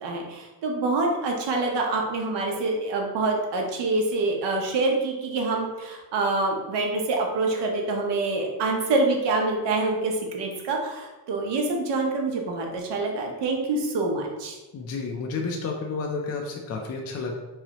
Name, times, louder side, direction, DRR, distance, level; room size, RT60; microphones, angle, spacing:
voice 1, 0.0-14.6, right 3 dB, 75° right, 1 dB, 0.9 m, -26 dB
voice 2, 14.7-17.3, left 4 dB, 40° left, 1 dB, 0.4 m, -31 dB
3.8 x 3.2 x 2.9 m, 1.1 s
cardioid pair, 130°, 42 cm